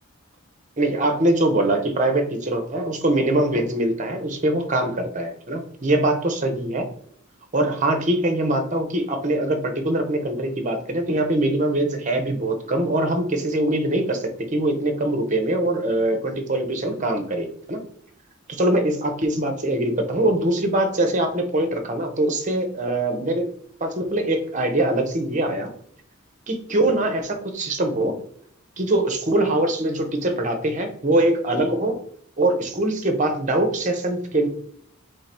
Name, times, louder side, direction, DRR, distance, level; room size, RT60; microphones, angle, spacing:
voice 1, 0.8-6.9 7.5-17.8 18.5-23.5 23.8-25.7 26.5-28.2 28.8-32.0 32.4-34.5, right 1 dB, 35° right, 5 dB, 0.8 m, -23 dB
3.8 x 3.2 x 4.3 m, 0.65 s
head